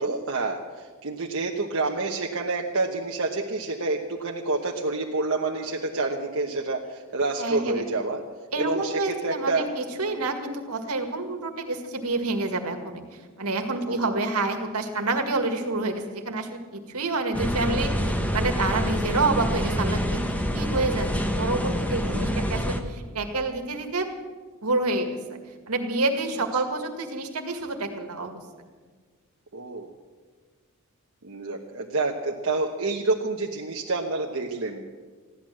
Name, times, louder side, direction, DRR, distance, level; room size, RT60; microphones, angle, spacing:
voice 1, 0.0-8.2 8.6-9.7 13.9-14.2 22.0-22.3 29.5-29.9 31.2-34.8, right 3 dB, 60° right, -1 dB, 1.1 m, -28 dB
voice 2, 7.4-7.8 8.5-13.0 13.4-20.2 20.5-21.1 21.4-24.1 24.6-25.4 25.7-28.4, right 3 dB, 80° right, 5 dB, 1.9 m, -28 dB
sound 1, 17.3-22.8, equal, 5° left, 1.0 m, -26 dB
15.0 x 11.5 x 7.5 m, 1.4 s
head